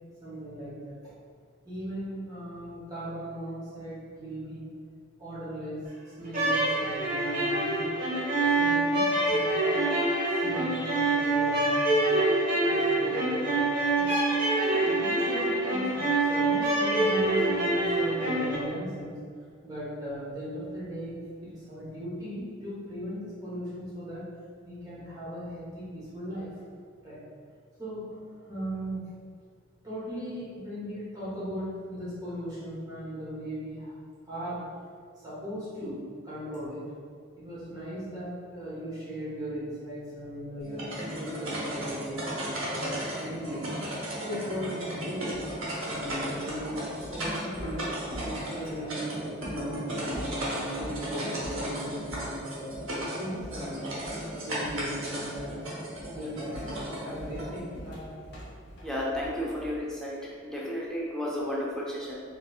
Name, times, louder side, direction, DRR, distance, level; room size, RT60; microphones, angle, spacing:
voice 1, 0.2-1.1 1.6-4.7 5.2-5.8 6.2-7.9 8.3-9.8 10.4-12.2 12.6-14.1 14.7-19.2 19.6-24.2 24.6-26.5 27.0-27.2 27.8-28.1 28.5-29.0 29.8-33.9 34.3-34.6 35.2-36.0 36.2-36.8 37.4-43.7 44.1-45.3 45.8-47.8 48.2-54.0 54.4-55.6 56.1-58.1, equal, 20° right, -10 dB, 1.0 m, -38 dB
sound 1, 6.2-18.6, right 2 dB, 40° right, 1.0 m, -26 dB
sound 2, 40.6-57.6, right 1 dB, 90° right, 0.9 m, -35 dB
sound 3, 45.3-48.9 49.4-49.6 50.0-51.0 51.4-51.7 52.1-52.3 52.7-52.9 53.4-54.3 54.6-55.0 55.3-55.6 56.0-59.9, equal, 55° left, 0.7 m, -43 dB
voice 2, 58.8-62.2, equal, 5° left, -6 dB, 0.5 m, -33 dB
3.8 x 2.7 x 2.3 m, 2.1 s
head